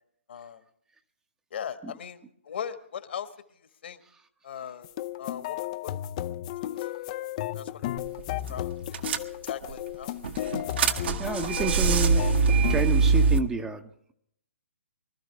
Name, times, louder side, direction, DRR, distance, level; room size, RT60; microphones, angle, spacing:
voice 1, 0.3-0.6 1.5-2.2 2.5-3.3 3.8-4.0 4.4-4.9 5.2-5.6 7.5-7.8 8.5-9.0 9.4-10.1, left 8 dB, 55° left, 9 dB, 1.6 m, -38 dB
sound 1, 4.8-12.8, left 13 dB, 35° left, 0.5 m, -34 dB
sound 2, 8.0-8.2 8.5-8.6 8.9-9.7 10.2-13.4, right 5 dB, 50° right, 1.3 m, -23 dB
voice 2, 11.2-12.3 12.7-14.1, right 3 dB, 10° right, 6 dB, 0.9 m, -30 dB
24.5 x 13.0 x 3.3 m, 0.68 s
figure-of-eight pair, 135°, 7 cm